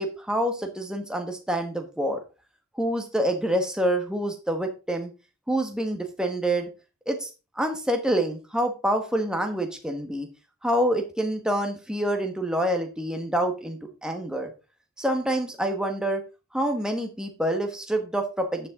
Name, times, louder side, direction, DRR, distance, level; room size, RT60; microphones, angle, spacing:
voice 1, 0.0-2.2 2.7-5.1 5.5-6.7 7.1-7.3 7.6-10.3 10.6-14.5 15.0-16.2 16.5-18.7, right 1 dB, 5° right, 4 dB, 1.5 m, -27 dB
12.0 x 7.2 x 3.8 m, 0.31 s
head